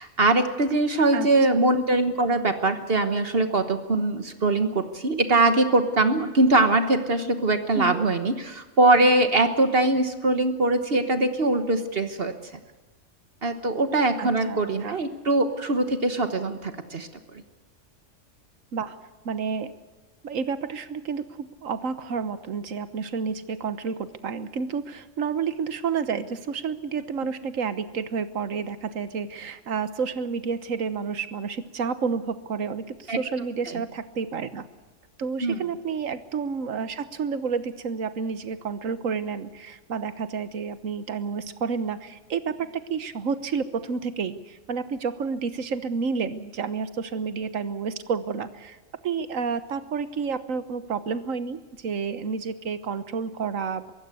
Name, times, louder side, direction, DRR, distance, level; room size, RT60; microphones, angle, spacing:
voice 1, 0.0-12.3 13.4-17.1 33.1-33.2 33.7-33.8 35.4-35.6, right 2 dB, 50° right, 9 dB, 1.4 m, -22 dB
voice 2, 1.1-1.6 7.7-8.1 14.2-15.0 18.7-19.0 19.2-19.7 20.2-34.7 35.2-48.8 49.0-53.9, right 5 dB, 85° right, 12 dB, 1.5 m, -30 dB
23.0 x 16.0 x 8.3 m, 1.2 s
omnidirectional pair, 1.3 m